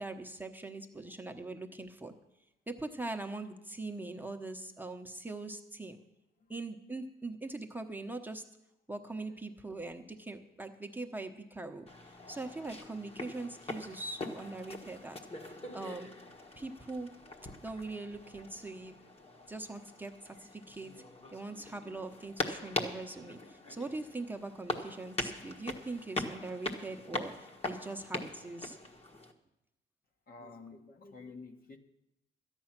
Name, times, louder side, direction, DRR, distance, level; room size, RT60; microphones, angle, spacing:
voice 1, 0.0-2.1 2.7-6.0 6.5-8.4 8.9-11.9 12.3-15.2 15.7-16.1 16.5-17.1 17.6-19.0 19.5-20.9 21.3-28.8, right 2 dB, 10° right, 4 dB, 0.9 m, -42 dB
sound 1, 11.9-29.3, left 2 dB, 30° left, 1.4 m, -42 dB
voice 2, 30.3-31.8, left 4 dB, 45° left, 4 dB, 1.4 m, -50 dB
13.0 x 9.8 x 5.9 m, 0.88 s
cardioid pair, 90°, 20 cm